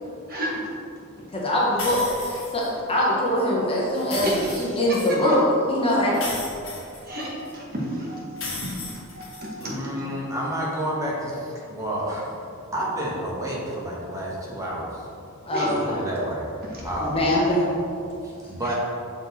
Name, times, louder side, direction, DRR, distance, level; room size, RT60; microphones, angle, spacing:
voice 1, 0.2-1.5 4.2-5.4 6.1-6.3 6.7-10.1 15.5-15.8 16.6-16.9 18.0-18.2 18.6-18.7, equal, 45° right, -3 dB, 1.1 m, -33 dB
voice 2, 1.3-4.3 4.6-6.2 15.4-16.0 17.0-17.7, left 1 dB, 25° left, -4 dB, 1.0 m, -23 dB
sound 1, 1.8-2.7 3.9-5.1 6.1-7.5 8.4-9.7, left 3 dB, 60° left, 1.4 m, -35 dB
voice 3, 9.6-12.3 12.7-15.0 15.6-16.4 16.8-17.3 18.2-18.7, right 1 dB, 15° right, -5 dB, 1.1 m, -30 dB
6.3 x 4.4 x 4.1 m, 2.5 s
head